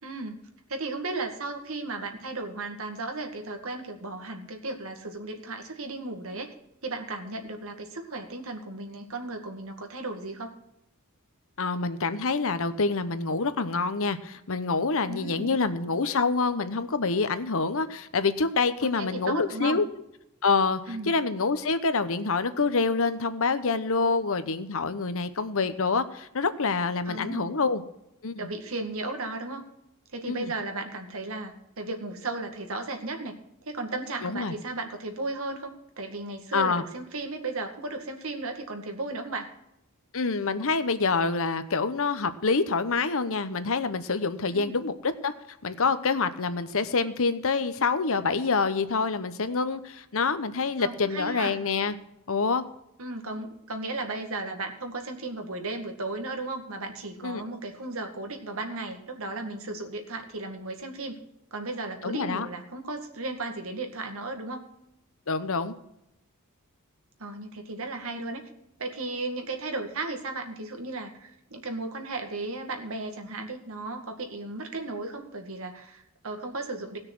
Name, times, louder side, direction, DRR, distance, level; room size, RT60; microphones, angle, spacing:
voice 1, 0.0-0.4 0.7-6.5 6.8-10.5 15.1-15.6 18.8-19.8 20.9-21.2 27.1-27.6 28.4-29.6 30.1-33.3 33.7-39.5 44.5-44.9 50.8-51.5 53.0-61.2 61.5-64.7 67.2-68.4 68.8-77.0, right 2 dB, 65° right, 5 dB, 2.0 m, -35 dB
voice 2, 11.6-19.8 20.4-27.8 28.2-28.5 30.3-30.5 34.2-34.5 36.5-36.8 40.1-45.3 45.6-51.9 52.3-52.6 57.2-57.4 62.0-62.5 65.3-65.7, left 4 dB, 65° left, 12 dB, 0.9 m, -26 dB
17.5 x 6.6 x 6.1 m, 0.84 s
head